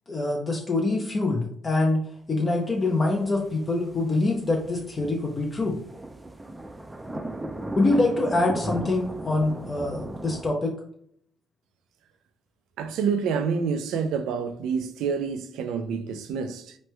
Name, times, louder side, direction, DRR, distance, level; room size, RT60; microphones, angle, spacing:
voice 1, 0.1-5.8 7.8-10.8, left 2 dB, 30° left, 0.5 m, -25 dB
sound 1, 2.8-10.5, right 2 dB, 15° right, 0.4 m, -37 dB
voice 2, 12.8-16.8, right 6 dB, 90° right, 0.3 m, -28 dB
3.0 x 2.2 x 3.0 m
cardioid pair, 90°, 0 cm